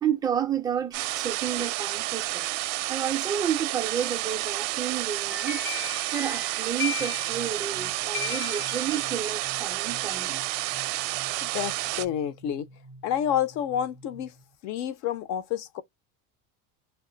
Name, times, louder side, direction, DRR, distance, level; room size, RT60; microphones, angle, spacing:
voice 1, 0.0-2.4 2.9-5.6 6.1-10.4, right 9 dB, 10° right, 0.3 m, -30 dB
sound 1, 0.9-12.0, right 18 dB, 70° right, 0.5 m, -30 dB
sound 2, 5.0-7.8 8.1-9.4, left 10 dB, 65° left, 0.9 m, -37 dB
sound 3, 7.0-14.5, right 2 dB, 85° left, 1.3 m, -50 dB
voice 2, 11.4-12.7 13.0-14.3 14.6-15.8, left 10 dB, 45° left, 0.6 m, -29 dB
2.4 x 2.3 x 3.8 m
cardioid pair, 170°, 37 cm